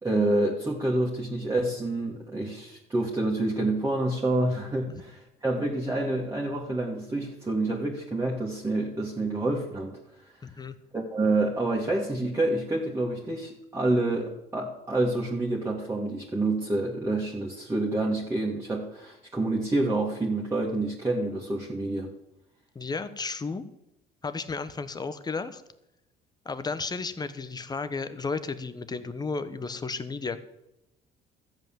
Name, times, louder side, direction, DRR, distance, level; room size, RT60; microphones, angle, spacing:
voice 1, 0.0-10.0 10.9-22.1, right 2 dB, 15° right, -3 dB, 2.3 m, -28 dB
voice 2, 10.4-10.7 22.7-23.6 24.2-25.6 26.4-30.4, left 4 dB, 25° left, 12 dB, 1.2 m, -33 dB
14.0 x 8.1 x 7.6 m, 0.89 s
cardioid pair, 110°, 17 cm